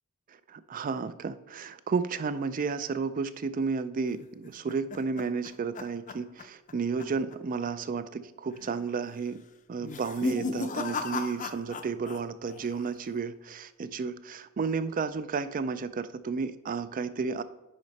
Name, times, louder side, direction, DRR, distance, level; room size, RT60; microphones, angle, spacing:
voice 1, 0.5-9.4 9.7-17.4, right 5 dB, 40° right, 14 dB, 0.4 m, -32 dB
sound 1, 4.2-6.7 7.0-7.3 7.7-7.8 8.5-8.9 9.8-12.2 12.5-13.1, left 4 dB, 35° left, 0.5 m, -36 dB
10.0 x 4.2 x 4.0 m, 1.0 s
head